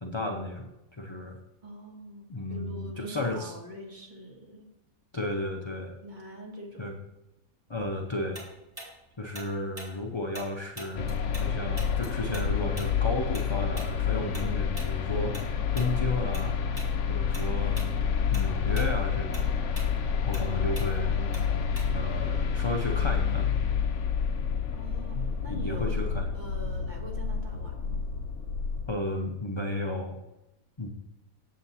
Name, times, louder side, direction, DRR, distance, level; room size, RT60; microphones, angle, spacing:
voice 1, 0.0-1.4 2.3-3.5 5.1-6.0 6.8-6.9 7.7-8.4 9.2-15.4 15.7-16.6 17.1-17.8 18.3-19.5 20.3-21.2 21.9-23.5 25.1-26.3 28.9-30.2 30.8-30.9, left 1 dB, 30° left, 2 dB, 0.5 m, -33 dB
voice 2, 1.6-4.7 6.0-6.8 24.7-28.0, right 1 dB, 30° right, 0 dB, 1.7 m, -44 dB
Tick-tock, 8.3-11.5 11.8-16.5 16.7-17.0 17.3-17.9 18.2-22.2, right 1 dB, 15° right, 2.5 m, -44 dB
sound 1, 11.0-28.9, left 6 dB, 60° left, 1.0 m, -29 dB
7.6 x 7.4 x 4.1 m, 0.96 s
omnidirectional pair, 1.5 m